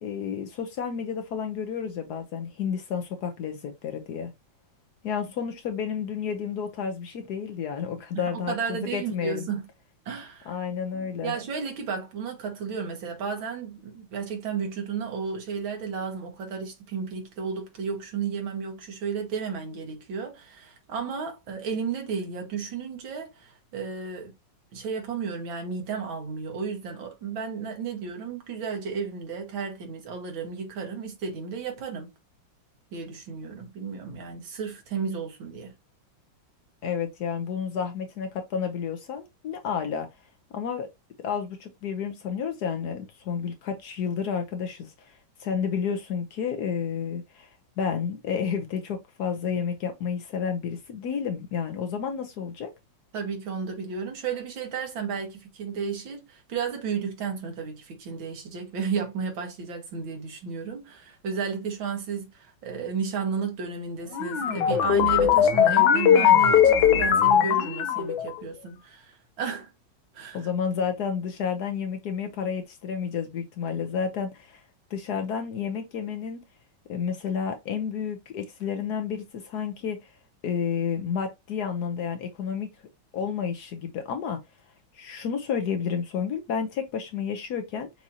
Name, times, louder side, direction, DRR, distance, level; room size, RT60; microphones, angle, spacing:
voice 1, 0.0-4.3 5.0-9.5 10.5-11.3 36.8-40.1 40.5-40.9 41.2-45.1 45.4-47.5 47.8-52.7 70.3-74.6 74.9-76.4 76.9-80.1 80.4-82.7 83.1-84.4 84.9-87.9, left 7 dB, 65° left, 1.1 m, -31 dB
voice 2, 8.3-9.6 10.1-10.5 10.9-24.3 24.7-32.1 32.9-35.7 53.1-69.7 70.1-70.5, right 6 dB, 85° right, 2.1 m, -33 dB
sound 1, 64.1-68.3, left 9 dB, 85° left, 1.5 m, -20 dB
6.0 x 2.8 x 2.7 m
omnidirectional pair, 2.1 m